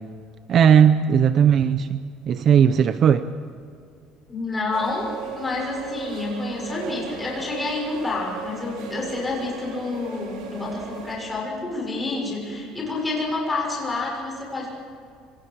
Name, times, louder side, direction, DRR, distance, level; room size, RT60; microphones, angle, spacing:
voice 1, 0.5-2.0 2.3-3.3, right 8 dB, 35° right, 11 dB, 0.7 m, -17 dB
voice 2, 4.3-14.7, left 3 dB, 15° left, -2 dB, 6.7 m, -28 dB
sound 1, 4.7-11.2, right 5 dB, 75° right, 5.3 m, -37 dB
26.5 x 26.0 x 4.9 m, 2.2 s
cardioid pair, 160°, 0 cm